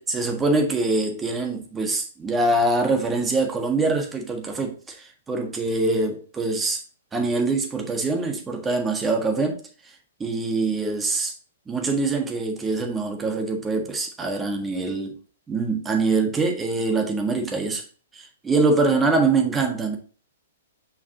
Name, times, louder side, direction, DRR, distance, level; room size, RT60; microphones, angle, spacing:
voice 1, 0.0-6.8 7.1-9.9 10.2-11.3 11.7-15.2 15.5-17.8 18.1-20.0, right 3 dB, 15° right, 1.6 m, -24 dB
7.0 x 5.8 x 2.8 m
figure-of-eight pair, 110°, 0 cm